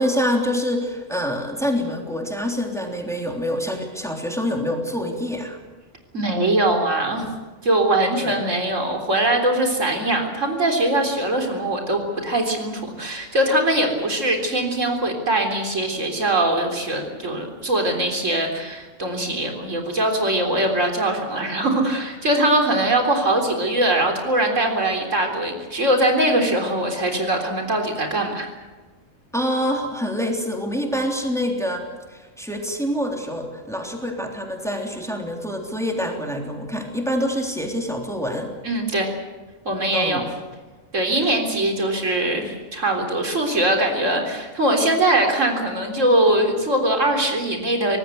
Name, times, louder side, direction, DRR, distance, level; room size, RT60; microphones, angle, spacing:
voice 1, 0.0-5.6 8.2-8.3 29.3-38.5 39.9-40.3 41.2-41.3, equal, ahead, 1 dB, 3.4 m, -26 dB
voice 2, 6.1-7.3 7.6-28.5 38.6-39.1 39.7-40.2 40.9-48.0, right 1 dB, 90° right, 3 dB, 4.1 m, -21 dB
24.5 x 18.5 x 7.9 m, 1.3 s
omnidirectional pair, 1.3 m